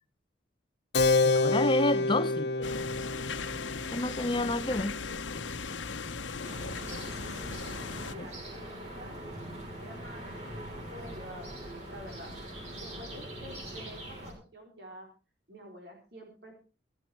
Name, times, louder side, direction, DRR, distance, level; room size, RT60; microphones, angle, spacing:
Keyboard (musical), 0.9-7.1, left 3 dB, 60° left, 1.4 m, -30 dB
voice 1, 1.2-2.8 3.9-5.0 8.2-8.3, left 2 dB, 25° left, 0.7 m, -30 dB
sound 1, 2.6-8.1, left 5 dB, 80° left, 1.0 m, -38 dB
sound 2, 6.4-14.3, right 1 dB, 35° right, 5.8 m, -42 dB
voice 2, 8.0-9.4 9.8-10.4 10.7-12.3 12.8-15.1 15.5-16.5, equal, 60° right, 4.0 m, -48 dB
15.5 x 13.5 x 4.7 m
head